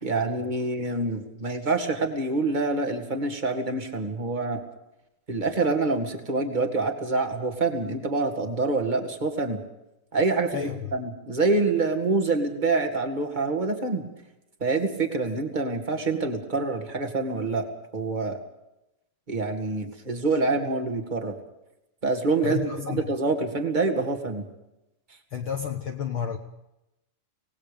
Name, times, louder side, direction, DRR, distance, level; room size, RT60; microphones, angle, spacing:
voice 1, 0.0-4.6 5.3-9.6 10.1-14.0 14.6-17.6 17.9-18.4 19.3-21.3 22.0-24.4, right 3 dB, 20° right, 5 dB, 1.5 m, -26 dB
voice 2, 22.4-23.1 25.3-26.4, left 7 dB, 65° left, 5 dB, 1.3 m, -30 dB
26.0 x 19.0 x 5.3 m, 0.91 s
omnidirectional pair, 4.1 m